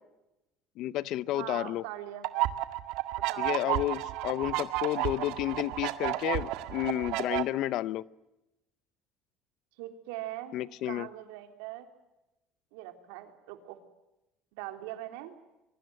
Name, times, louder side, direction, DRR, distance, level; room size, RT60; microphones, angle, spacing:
voice 1, 0.8-1.8 3.4-8.0 10.5-11.1, left 14 dB, 60° left, 19 dB, 0.8 m, -31 dB
voice 2, 1.3-2.2 3.3-3.7 9.8-11.9 12.7-13.8 14.6-15.4, right 14 dB, 85° right, 7 dB, 3.5 m, -41 dB
sound 1, 2.2-7.4, right 16 dB, 70° right, 1.8 m, -32 dB
24.0 x 23.0 x 7.8 m, 0.95 s
cardioid pair, 135°, 0 cm